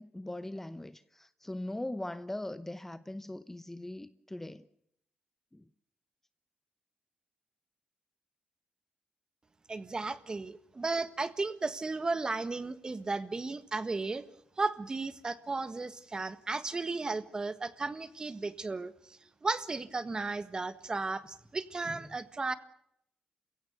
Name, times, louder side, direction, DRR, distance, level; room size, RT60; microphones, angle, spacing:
voice 1, 0.0-4.7 5.5-5.7 21.9-22.0, left 1 dB, 10° left, 0.9 m, -40 dB
voice 2, 9.7-14.2 14.6-22.5, right 3 dB, 30° right, 1.5 m, -35 dB
28.5 x 16.5 x 7.0 m
cardioid pair, 90°, 3 cm